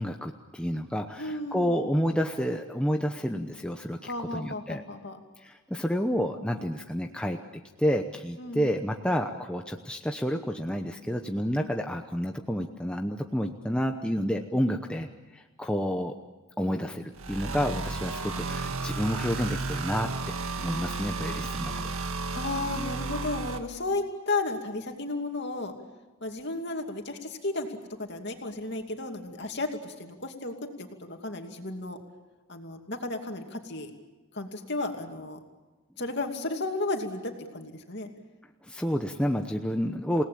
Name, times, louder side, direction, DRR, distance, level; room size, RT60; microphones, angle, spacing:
voice 1, 0.0-4.8 5.4-7.4 7.8-16.1 16.6-20.1 20.6-22.0 38.6-40.2, equal, 5° left, 3 dB, 0.9 m, -30 dB
voice 2, 1.2-1.8 4.0-5.2 8.4-8.7 22.3-25.7 26.2-32.0 32.5-33.9 34.3-35.4 36.0-38.1, left 2 dB, 50° left, 3 dB, 2.6 m, -33 dB
sound 1, 17.1-23.6, right 3 dB, 70° right, 1.8 m, -33 dB
28.5 x 18.0 x 8.7 m, 1.2 s
head